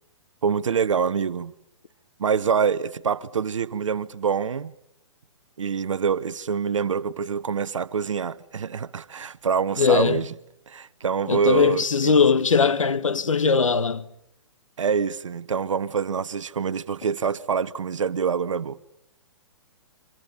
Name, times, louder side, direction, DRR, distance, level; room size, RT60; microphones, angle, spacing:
voice 1, 0.4-1.5 2.2-4.7 5.6-10.3 10.7-12.1 14.8-18.8, right 6 dB, 75° right, 1.1 m, -25 dB
voice 2, 9.8-10.2 11.3-14.0, left 5 dB, 80° left, 1.3 m, -20 dB
27.5 x 24.5 x 7.2 m
hypercardioid pair, 130°, 16 cm